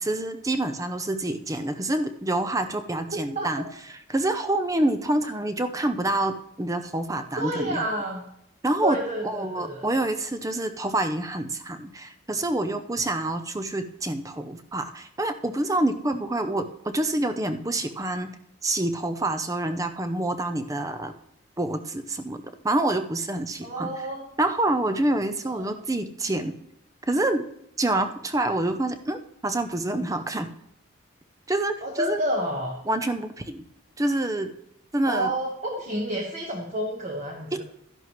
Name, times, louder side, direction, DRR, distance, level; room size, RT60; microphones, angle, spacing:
voice 1, 0.0-3.6 4.1-7.8 8.6-9.0 9.2-18.3 18.6-21.1 21.6-23.9 24.4-26.5 27.1-27.5 27.8-30.5 31.5-32.2 32.9-33.6 34.0-34.5 34.9-35.3 37.5-37.6, right 1 dB, 15° right, 9 dB, 0.6 m, -27 dB
voice 2, 3.1-3.5 7.4-8.2 8.8-9.9 23.6-24.2 25.5-25.7 31.8-32.8 35.1-37.6, right 1 dB, 35° right, 0 dB, 1.3 m, -29 dB
12.5 x 11.0 x 3.1 m, 0.74 s
head